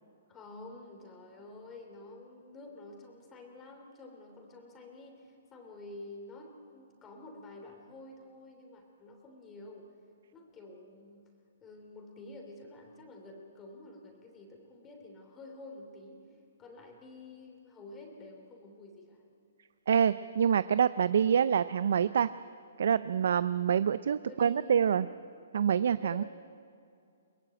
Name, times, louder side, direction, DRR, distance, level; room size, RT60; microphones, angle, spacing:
voice 1, 0.3-9.9 10.3-11.3 11.6-19.2 24.3-25.2 26.0-26.2, left 2 dB, 15° left, 2 dB, 3.1 m, -49 dB
voice 2, 19.9-22.3 22.8-25.1 25.5-26.2, right 8 dB, 65° right, 15 dB, 0.5 m, -26 dB
22.5 x 20.5 x 8.9 m, 2.4 s
hypercardioid pair, 150°, 0 cm